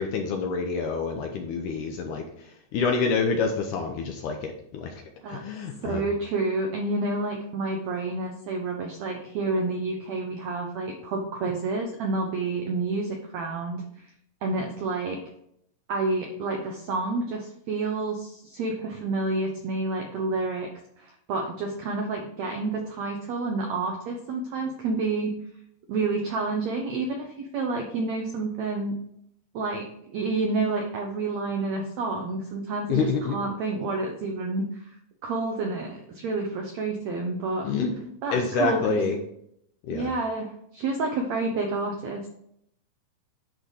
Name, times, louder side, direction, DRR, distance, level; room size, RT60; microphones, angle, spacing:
voice 1, 0.0-2.3 2.7-5.0 5.3-6.0 32.9-33.4 37.6-37.9 38.3-39.2 39.9-40.1, left 5 dB, 75° left, 3 dB, 2.0 m, -27 dB
voice 2, 5.8-14.1 14.4-15.2 15.9-20.7 21.0-25.3 25.9-29.0 29.5-35.0 35.2-37.7 38.2-39.0 39.9-42.3, right 3 dB, 80° right, 2 dB, 1.6 m, -29 dB
10.5 x 3.8 x 4.9 m, 0.73 s
omnidirectional pair, 4.3 m